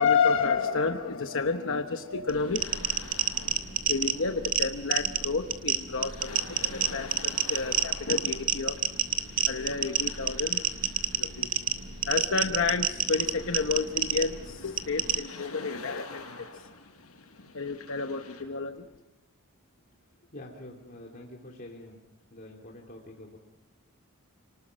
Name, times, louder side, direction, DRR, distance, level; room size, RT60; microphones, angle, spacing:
voice 1, 0.0-2.9 3.3-8.8 9.5-10.6 11.2-11.5 12.1-16.7 17.5-18.9, left 4 dB, 60° left, 6 dB, 1.0 m, -30 dB
sound 1, 2.3-18.4, left 3 dB, 85° left, 5.6 m, -48 dB
sound 2, 2.3-15.2, right 8 dB, 40° right, 1.8 m, -29 dB
voice 2, 20.3-22.1 22.3-23.4, left 1 dB, 40° left, -2 dB, 2.9 m, -46 dB
30.0 x 19.5 x 6.3 m, 0.99 s
head